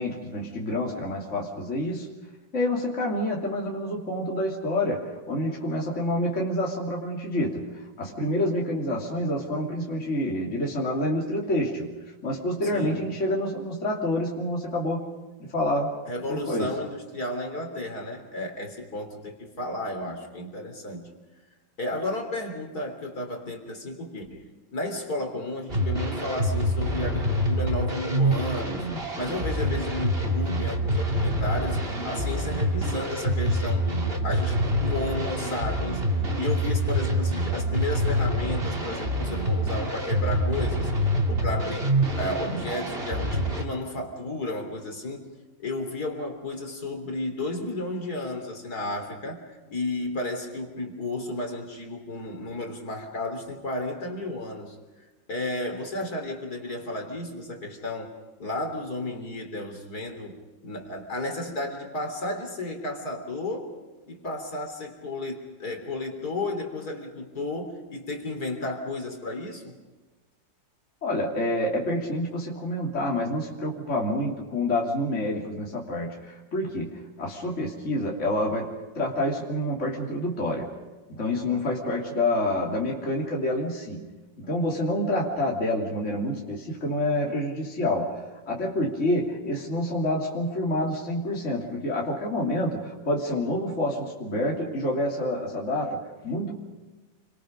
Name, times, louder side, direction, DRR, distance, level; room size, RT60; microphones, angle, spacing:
voice 1, 0.0-2.1 2.5-11.9 12.2-15.0 15.4-15.9 16.3-16.7 71.0-80.7 81.1-84.1 84.4-96.0 96.2-96.5, left 1 dB, 40° left, -2 dB, 3.3 m, -28 dB
voice 2, 12.7-13.1 16.1-21.1 21.8-40.9 41.3-45.3 45.6-54.8 55.3-58.1 58.4-63.7 64.1-69.7, left 2 dB, 55° left, 4 dB, 3.9 m, -33 dB
sound 1, 25.7-43.6, equal, 30° right, 2.9 m, -26 dB
29.5 x 25.0 x 5.2 m, 1.2 s
omnidirectional pair, 2.0 m